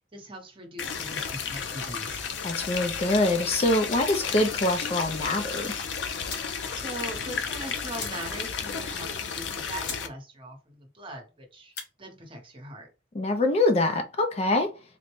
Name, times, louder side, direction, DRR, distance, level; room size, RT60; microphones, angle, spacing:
voice 1, 0.1-2.3 6.7-11.7 12.0-12.9, right 1 dB, 30° right, 0.9 m, -41 dB
sound 1, 0.8-10.1, left 6 dB, 85° left, 0.5 m, -33 dB
voice 2, 2.4-5.7 13.1-14.7, left 2 dB, 35° left, 0.4 m, -24 dB
sound 2, 4.0-4.4 5.8-5.9 6.2-6.6 7.0-7.1 7.3-7.4 7.9-8.5 8.9-9.0 9.5-9.6 9.8-10.1 10.4-10.8 11.6-11.9, left 5 dB, 60° left, 0.9 m, -40 dB
3.8 x 2.1 x 3.0 m
head